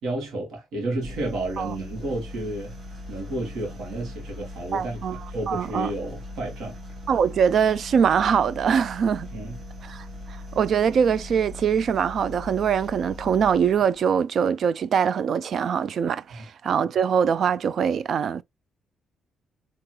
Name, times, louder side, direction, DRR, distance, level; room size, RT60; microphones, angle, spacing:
voice 1, 0.0-2.7 3.1-5.0 5.3-6.8 9.3-9.6, right 1 dB, 75° right, 2.1 m, -31 dB
sound 1, 1.0-14.0, left 1 dB, 40° right, 1.8 m, -40 dB
voice 2, 4.7-5.9 7.1-9.3 9.8-10.0 10.6-18.4, right 7 dB, 60° right, 0.4 m, -23 dB
4.7 x 3.4 x 2.2 m
cardioid pair, 90°, 0 cm